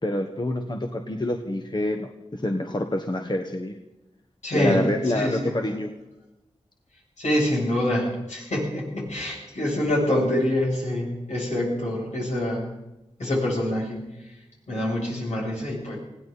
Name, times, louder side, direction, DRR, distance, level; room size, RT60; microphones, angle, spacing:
voice 1, 0.0-3.8 4.5-5.9, left 1 dB, 40° left, 4 dB, 1.4 m, -27 dB
voice 2, 4.4-5.6 7.2-12.7 13.2-14.0 14.7-16.0, left 1 dB, 80° left, -4 dB, 7.9 m, -26 dB
20.5 x 16.0 x 4.2 m, 0.97 s
cardioid pair, 45°, 12 cm